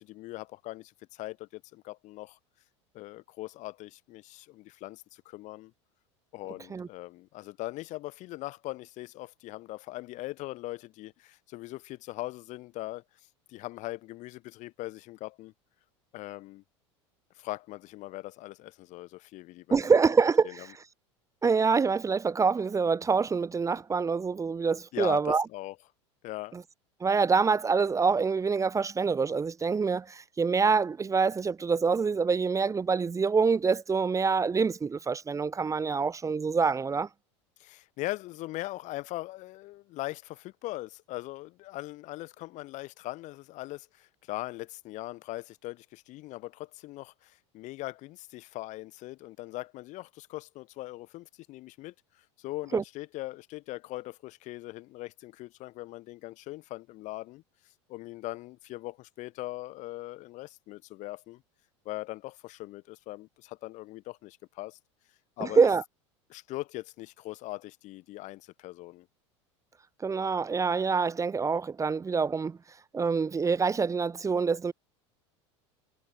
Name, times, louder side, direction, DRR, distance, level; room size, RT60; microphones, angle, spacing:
voice 1, 0.0-2.4 2.9-5.7 6.3-13.0 13.5-15.5 16.1-16.6 17.3-19.8 20.4-20.5 24.9-25.8 26.2-26.6 37.6-51.9 52.4-57.4 57.9-61.4 61.8-64.8 65.4-65.6 66.3-69.1, left 18 dB, 55° left, 2.7 m, -40 dB
voice 2, 19.7-20.6 21.4-25.4 26.5-26.6 27.0-37.1 52.7-52.8 65.4-65.8 70.0-72.6 72.9-74.7, right 5 dB, 20° right, 1.3 m, -26 dB
hypercardioid pair, 85°, 15 cm